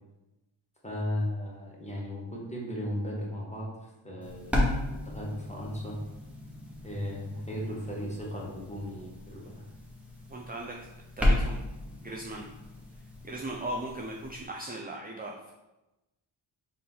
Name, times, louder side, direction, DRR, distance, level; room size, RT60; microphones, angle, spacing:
voice 1, 0.8-6.0 6.8-9.6, left 1 dB, 15° left, -3 dB, 1.4 m, -36 dB
sound 1, 4.2-14.5, left 1 dB, 5° right, 1.1 m, -34 dB
voice 2, 10.3-10.9 11.2-11.6 12.0-12.5 13.2-15.5, right 1 dB, 20° right, -1 dB, 0.5 m, -38 dB
4.1 x 2.6 x 3.9 m, 0.99 s
cardioid pair, 45°, 49 cm